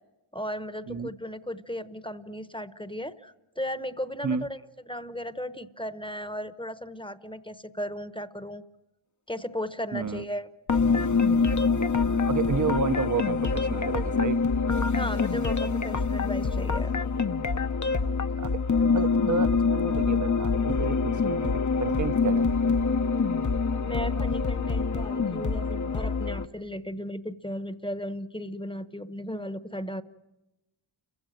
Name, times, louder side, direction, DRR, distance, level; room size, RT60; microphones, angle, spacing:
voice 1, 0.3-4.6 4.9-8.6 9.3-10.5 14.9-16.9 23.8-30.0, equal, 10° left, 12 dB, 1.0 m, -36 dB
voice 2, 9.9-10.2 12.0-14.4 18.4-22.8, right 5 dB, 40° right, 14 dB, 0.8 m, -31 dB
Background e-music fragment., 10.7-26.5, left 4 dB, 40° left, 0.8 m, -25 dB
29.5 x 15.5 x 9.1 m, 1.0 s
wide cardioid pair, 65°, 48 cm